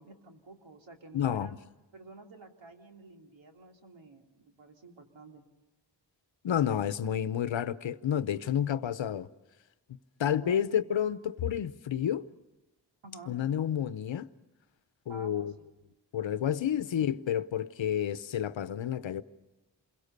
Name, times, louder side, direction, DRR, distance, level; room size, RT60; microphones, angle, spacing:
voice 1, 0.0-1.6 1.9-5.4 10.2-10.6 13.0-13.4 15.1-15.7, right 2 dB, 85° right, 3.0 m, -50 dB
voice 2, 1.1-1.6 6.4-9.3 10.2-12.3 13.3-14.3 15.1-15.5 16.1-19.2, left 9 dB, 90° left, 0.9 m, -30 dB
28.5 x 22.0 x 6.7 m
wide cardioid pair, 170°, 44 cm